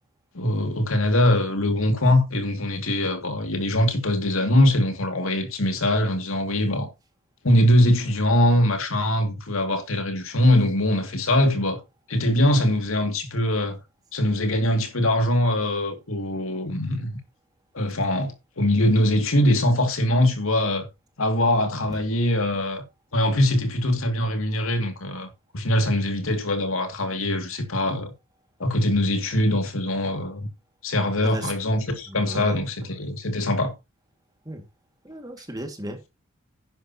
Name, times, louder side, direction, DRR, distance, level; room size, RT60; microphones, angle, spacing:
voice 1, 0.3-6.9 7.4-11.8 12.1-13.8 14.1-17.1 17.7-20.9 21.2-22.8 23.1-25.3 25.5-28.1 28.6-30.5 30.8-33.7, left 1 dB, 70° left, 2.4 m, -22 dB
voice 2, 32.1-32.9 34.5-34.6 35.0-36.1, right 1 dB, 20° right, 2.1 m, -36 dB
11.5 x 10.5 x 2.9 m
head